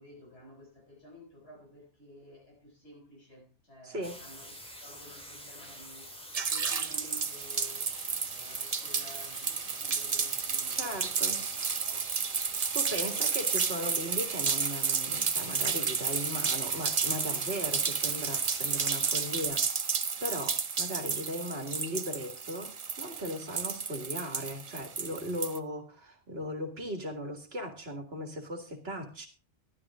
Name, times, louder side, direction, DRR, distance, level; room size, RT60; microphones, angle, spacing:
voice 1, 0.0-4.6 4.8-6.1 6.5-11.6 11.8-12.4 13.0-13.3, left 1 dB, 65° left, 6.4 m, -53 dB
voice 2, 3.8-4.2 10.7-11.5 12.7-19.7 20.2-29.3, equal, 65° right, 2.3 m, -38 dB
sound 1, 4.0-19.5, equal, 5° left, 2.4 m, -47 dB
sound 2, 6.3-25.6, right 5 dB, 40° right, 0.8 m, -32 dB
12.5 x 12.0 x 3.7 m
omnidirectional pair, 1.1 m